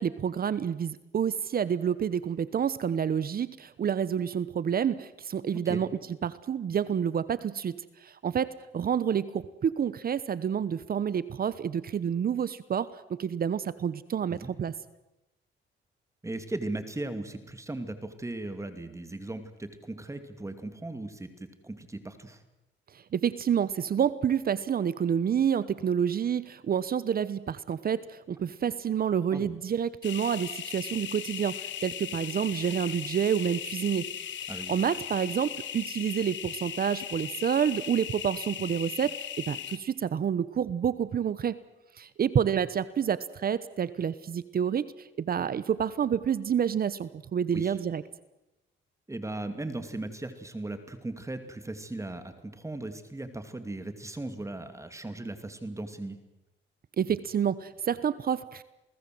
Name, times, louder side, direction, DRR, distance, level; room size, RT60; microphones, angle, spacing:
voice 1, 0.0-5.9 6.2-7.8 8.2-8.5 8.7-14.7 23.1-34.1 34.4-41.6 42.0-44.8 45.2-48.0 57.0-58.6, right 8 dB, 50° right, 17 dB, 1.0 m, -28 dB
voice 2, 16.2-22.4 29.3-29.5 34.5-34.9 47.5-47.8 49.1-56.2, right 2 dB, 15° right, 9 dB, 2.6 m, -37 dB
sound 1, 30.0-39.8, left 10 dB, 70° left, 1.7 m, -38 dB
28.5 x 19.0 x 7.8 m, 0.95 s
cardioid pair, 90°, 20 cm